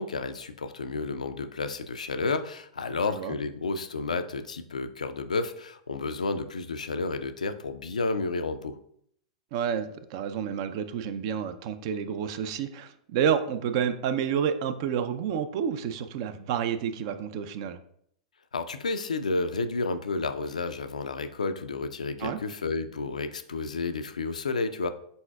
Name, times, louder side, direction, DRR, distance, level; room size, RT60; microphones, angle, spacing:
voice 1, 0.0-8.8 18.5-24.9, left 3 dB, 80° left, 9 dB, 0.3 m, -31 dB
voice 2, 9.5-17.8 22.2-22.4, right 8 dB, 50° right, 10 dB, 0.4 m, -29 dB
4.1 x 3.9 x 2.3 m, 0.68 s
figure-of-eight pair, 100°, 4 cm